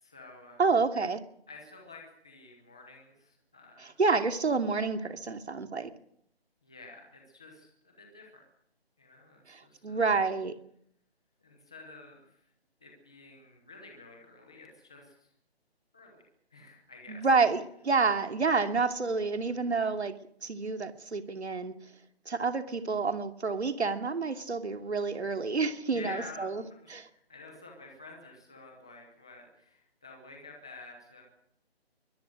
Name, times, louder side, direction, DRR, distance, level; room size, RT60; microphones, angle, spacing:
voice 1, 0.0-0.6 1.5-4.0 6.6-8.4 9.0-10.0 11.4-12.4 12.8-15.3 15.9-16.2 16.5-17.3 25.9-31.2, left 3 dB, 5° left, 0.9 m, -50 dB
voice 2, 0.6-1.2 3.8-5.9 9.5-10.5 17.1-20.2 20.4-21.7 22.3-26.6 26.9-27.1, right 4 dB, 85° right, 2.8 m, -29 dB
24.0 x 21.5 x 6.5 m
hypercardioid pair, 180°, 32 cm